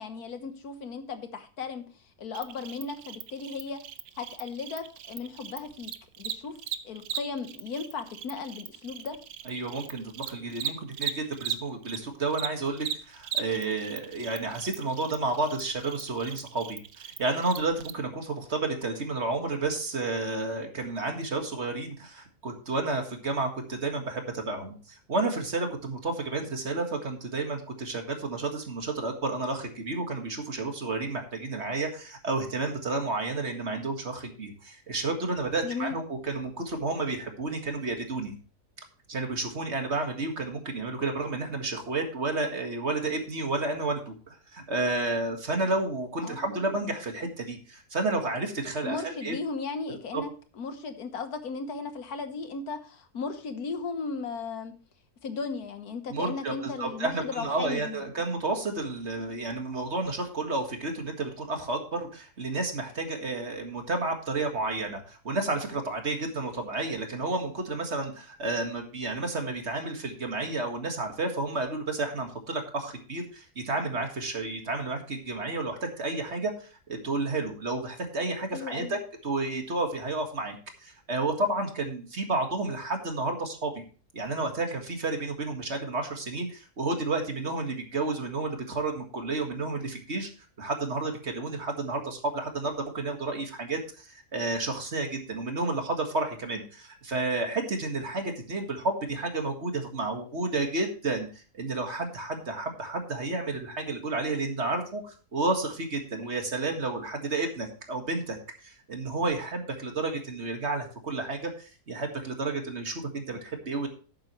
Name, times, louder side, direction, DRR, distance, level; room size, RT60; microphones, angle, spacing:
voice 1, 0.0-3.8 4.2-5.9 6.2-6.6 6.8-9.2 35.6-36.0 46.2-46.7 48.8-50.3 50.5-54.7 55.2-58.1 78.5-79.0, left 4 dB, 85° left, 8 dB, 1.7 m, -36 dB
Cricket, 2.3-12.0 12.3-17.9, right 9 dB, 80° right, 1.2 m, -38 dB
voice 2, 9.5-38.3 39.1-49.3 50.1-50.2 56.1-80.6 80.8-83.7 84.1-90.3 90.6-108.4 108.6-113.9, right 3 dB, 45° right, 4 dB, 2.1 m, -31 dB
12.0 x 8.8 x 3.2 m, 0.38 s
omnidirectional pair, 1.6 m